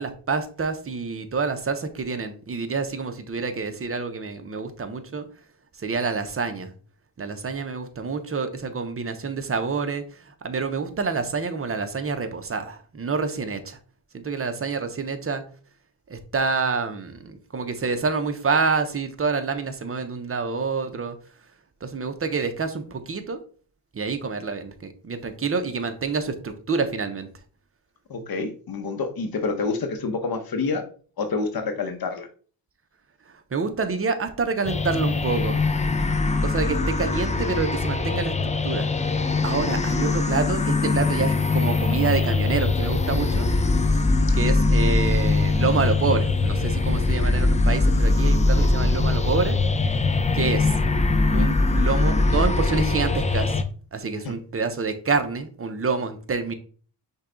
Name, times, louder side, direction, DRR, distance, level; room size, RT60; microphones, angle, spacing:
voice 1, 0.0-5.2 5.8-6.7 7.2-13.8 14.1-15.4 16.1-21.2 21.8-23.4 23.9-27.3 33.5-35.6 36.4-38.3 38.6-38.9 39.4-43.5 44.3-49.6 50.3-50.8 51.3-53.6 53.9-56.5, right 4 dB, 30° right, 8 dB, 0.7 m, -27 dB
voice 2, 28.1-30.8 31.2-32.3 54.2-54.3, left 4 dB, 55° left, 6 dB, 0.8 m, -28 dB
sound 1, 34.6-53.6, left 3 dB, 15° left, 0.4 m, -22 dB
5.4 x 2.3 x 3.8 m, 0.42 s
cardioid pair, 70°, 43 cm